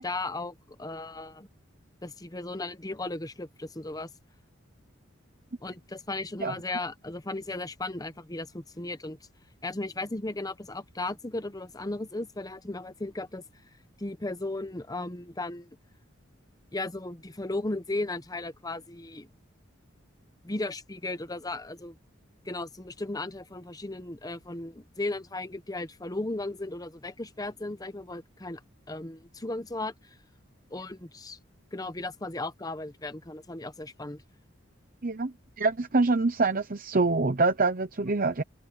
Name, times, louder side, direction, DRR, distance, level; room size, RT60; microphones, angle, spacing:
voice 1, 0.0-1.5 2.0-4.1 5.6-9.2 9.6-13.4 14.0-15.7 16.7-19.3 20.4-22.0 22.4-28.6 28.9-29.9 30.7-31.4 31.7-34.2, left 2 dB, 20° left, 1.0 m, -36 dB
voice 2, 35.0-38.4, right 3 dB, 45° right, 0.9 m, -25 dB
head